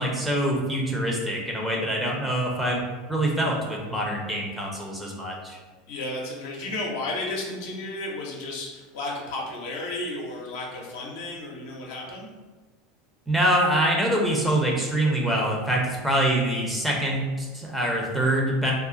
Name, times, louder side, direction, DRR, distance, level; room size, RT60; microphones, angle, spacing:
voice 1, 0.0-2.8 3.1-5.6 13.3-18.7, right 1 dB, 5° right, -2 dB, 0.7 m, -25 dB
voice 2, 5.9-12.3, left 2 dB, 60° left, -2 dB, 0.6 m, -33 dB
2.4 x 2.3 x 3.8 m, 1.3 s
figure-of-eight pair, 75°, 0 cm